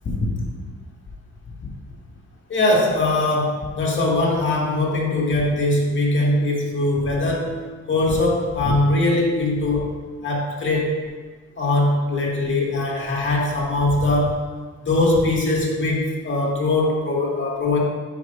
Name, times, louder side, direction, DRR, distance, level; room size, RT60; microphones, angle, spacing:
voice 1, 2.5-7.6 7.9-9.9 10.2-11.0 11.6-14.4 14.9-17.8, left 2 dB, 40° left, -3 dB, 2.0 m, -21 dB
10.0 x 5.1 x 2.6 m, 1.4 s
cardioid pair, 90°, 30 cm